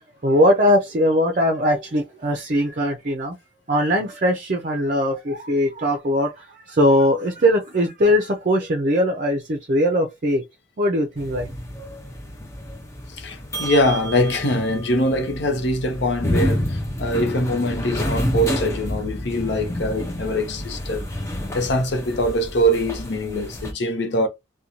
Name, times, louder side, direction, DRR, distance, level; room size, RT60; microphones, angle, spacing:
voice 1, 0.2-3.3 3.7-10.4 10.8-11.5, equal, 45° right, 0.5 m, -20 dB
sound 1, 11.2-23.7, equal, 15° left, 0.5 m, -29 dB
voice 2, 13.1-21.1 21.5-24.3, equal, 70° left, 0.7 m, -23 dB
2.5 x 2.2 x 2.9 m
head